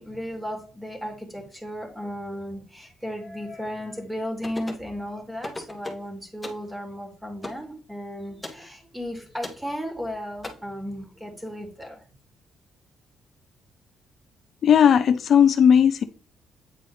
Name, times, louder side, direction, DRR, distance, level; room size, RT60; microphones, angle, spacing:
voice 1, 0.0-12.0, equal, 10° right, 2.4 m, -35 dB
sound 1, 4.4-4.9 5.4-6.1 6.4-6.7 7.4-7.6 8.4-8.6 9.4-9.6 10.4-10.5, left 2 dB, 10° left, 1.5 m, -36 dB
voice 2, 14.6-16.0, left 8 dB, 60° left, 0.5 m, -16 dB
8.6 x 4.1 x 3.2 m
cardioid pair, 90°, 0 cm